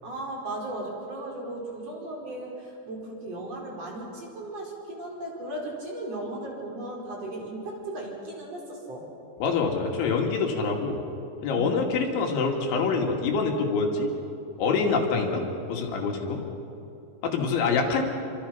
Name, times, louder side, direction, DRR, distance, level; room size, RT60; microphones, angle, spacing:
voice 1, 0.0-9.1 11.5-11.8, right 1 dB, 30° right, -1 dB, 5.3 m, -36 dB
voice 2, 9.4-11.0 11.4-14.1 14.6-15.4 15.7-16.4 17.2-18.0, left 4 dB, 65° left, 1 dB, 4.6 m, -25 dB
29.0 x 26.0 x 5.8 m, 2.9 s
omnidirectional pair, 5.9 m